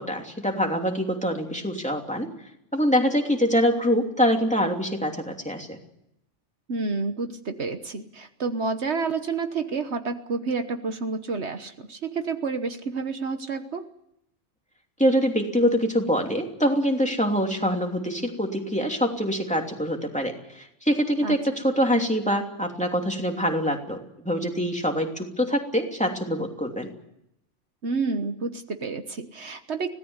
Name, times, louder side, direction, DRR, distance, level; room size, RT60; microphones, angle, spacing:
voice 1, 0.0-2.3 2.7-5.8 15.0-26.9, equal, 5° left, 2 dB, 3.0 m, -24 dB
voice 2, 6.7-13.9 21.2-21.4 27.8-29.9, right 4 dB, 65° right, 8 dB, 1.4 m, -29 dB
25.0 x 17.5 x 8.1 m, 0.81 s
omnidirectional pair, 1.2 m